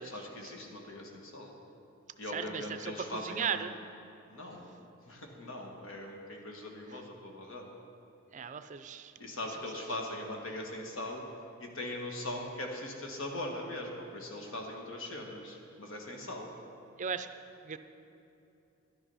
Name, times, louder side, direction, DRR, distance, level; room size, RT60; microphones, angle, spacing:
voice 1, 0.0-1.5 2.2-3.6 4.3-4.8 5.1-7.7 9.2-11.2 11.6-16.5, left 1 dB, 70° left, 1 dB, 1.7 m, -40 dB
voice 2, 2.3-3.7 6.9-7.0 8.3-9.1 17.0-17.3 17.6-17.8, right 7 dB, 35° right, 10 dB, 0.5 m, -37 dB
11.5 x 10.0 x 5.5 m, 2.8 s
head